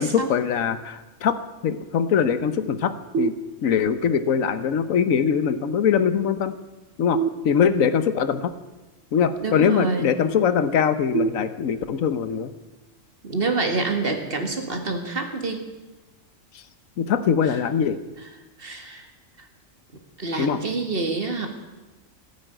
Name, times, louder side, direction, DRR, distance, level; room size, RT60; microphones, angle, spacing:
voice 1, 0.0-1.4 1.6-3.3 3.6-6.6 7.0-8.5 9.1-12.5 17.0-18.0 20.4-20.6, left 7 dB, 90° left, 12 dB, 1.3 m, -22 dB
sound 1, 3.1-4.1 7.1-8.1 11.1-12.1, right 6 dB, 65° right, 1.2 m, -29 dB
voice 2, 9.4-10.1 13.2-15.6 18.6-19.1 20.2-21.5, right 3 dB, 45° right, 5 dB, 2.1 m, -27 dB
15.0 x 9.7 x 9.1 m, 1.2 s
omnidirectional pair, 1.4 m